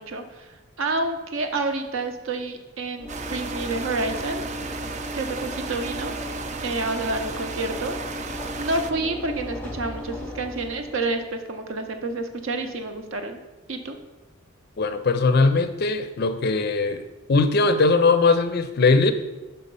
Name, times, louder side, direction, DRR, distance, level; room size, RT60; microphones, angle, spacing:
voice 1, 0.0-4.4 5.1-6.1 6.6-8.2 8.6-13.4 13.7-13.9, right 2 dB, 65° right, 6 dB, 0.7 m, -29 dB
Train / Engine / Alarm, 3.0-11.2, left 1 dB, 5° left, 0.7 m, -36 dB
sound 1, 3.1-8.9, right 5 dB, 30° right, 0.3 m, -35 dB
voice 2, 14.8-17.0 17.3-19.1, left 3 dB, 45° left, 10 dB, 0.4 m, -20 dB
5.7 x 4.1 x 5.3 m, 1.1 s
head